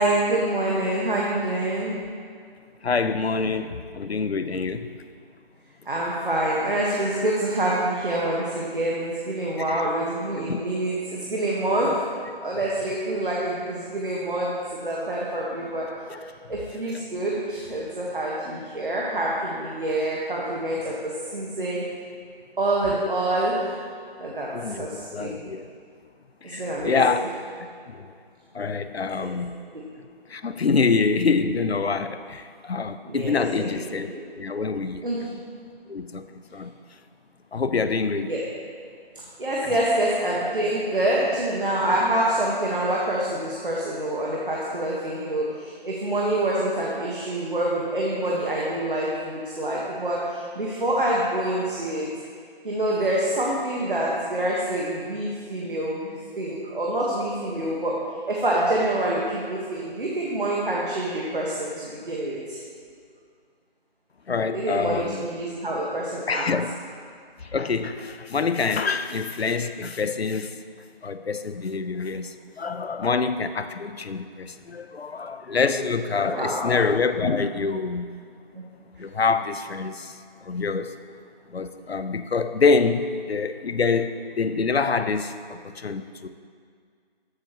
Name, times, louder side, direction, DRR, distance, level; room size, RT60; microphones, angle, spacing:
voice 1, 0.0-2.0 5.8-12.0 12.4-15.9 16.5-21.8 22.6-23.7 24.2-25.4 26.4-27.2 29.2-29.3 33.0-33.7 34.0-34.2 35.0-35.4 38.3-38.4 39.4-52.1 52.6-58.0 58.3-62.6 64.5-66.5 76.2-76.6 78.5-78.6, right 1 dB, 55° right, -4 dB, 1.5 m, -26 dB
voice 2, 2.8-4.9 9.7-9.8 10.5-10.6 16.1-16.2 24.5-25.7 26.4-27.3 27.9-28.1 28.5-29.7 30.3-34.1 34.4-35.1 35.9-36.7 37.5-38.3 64.3-65.3 66.3-66.8 67.4-70.6 71.0-78.2 79.0-80.9 81.5-86.3, left 4 dB, 85° left, 11 dB, 0.7 m, -26 dB
14.0 x 7.7 x 3.1 m, 2.1 s
figure-of-eight pair, 175°, 31 cm